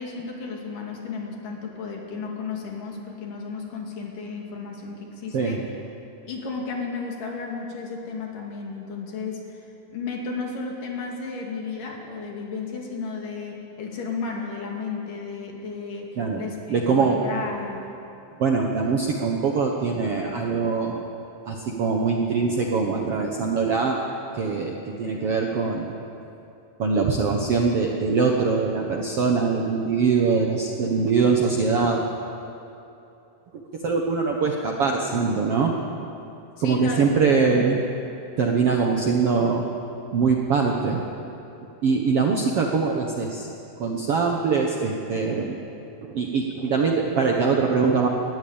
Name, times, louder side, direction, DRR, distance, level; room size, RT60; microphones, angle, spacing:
voice 1, 0.0-5.6 6.3-9.6 9.9-17.9 36.6-37.1 37.4-37.6, left 4 dB, 65° left, 0 dB, 3.9 m, -33 dB
voice 2, 16.7-17.2 18.4-21.0 21.4-24.0 24.3-25.9 26.8-32.0 33.8-35.7 36.6-37.8 38.4-39.6 40.1-41.0 41.8-43.5 43.8-45.6 46.0-48.1, right 5 dB, 60° right, 0 dB, 1.6 m, -23 dB
20.5 x 14.5 x 8.8 m, 2.8 s
omnidirectional pair, 4.2 m